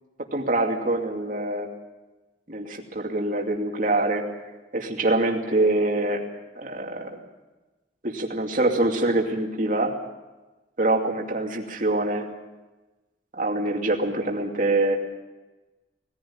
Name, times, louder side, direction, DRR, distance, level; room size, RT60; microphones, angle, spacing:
voice 1, 0.3-1.7 2.5-4.2 4.7-6.2 6.5-7.2 8.0-10.0 10.8-12.3 13.4-15.0, right 2 dB, 45° right, 1 dB, 2.6 m, -24 dB
20.0 x 15.0 x 8.8 m, 1.1 s
head